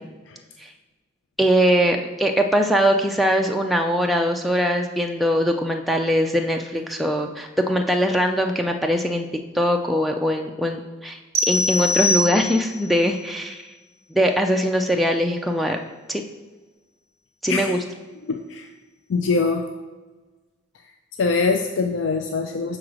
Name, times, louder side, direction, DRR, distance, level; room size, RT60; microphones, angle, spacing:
voice 1, 1.4-9.3 9.5-11.2 11.5-13.7 14.1-15.8 16.1-16.2 17.4-17.8, equal, ahead, 2 dB, 0.3 m, -21 dB
sound 1, 11.3-12.9, left 2 dB, 30° right, 0.9 m, -22 dB
voice 2, 17.5-17.8 18.3-18.7 19.1-19.6 21.2-22.8, left 4 dB, 70° left, 5 dB, 0.4 m, -23 dB
6.4 x 3.8 x 6.1 m, 1.3 s
head